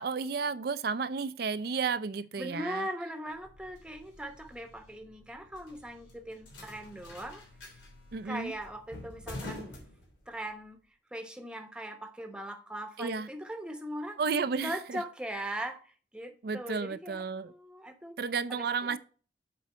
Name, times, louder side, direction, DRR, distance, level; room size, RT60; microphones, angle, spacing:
voice 1, 0.0-2.9 8.1-8.5 13.0-13.3 14.2-15.0 16.4-17.5 18.2-19.0, right 5 dB, 55° right, 0.4 m, -32 dB
voice 2, 2.4-7.4 8.2-9.7 10.3-10.8 11.1-14.2 14.6-18.2 18.5-19.0, right 1 dB, 5° right, 0.9 m, -40 dB
sound 1, 3.3-10.6, left 1 dB, 90° left, 3.0 m, -48 dB
7.6 x 4.7 x 4.2 m
head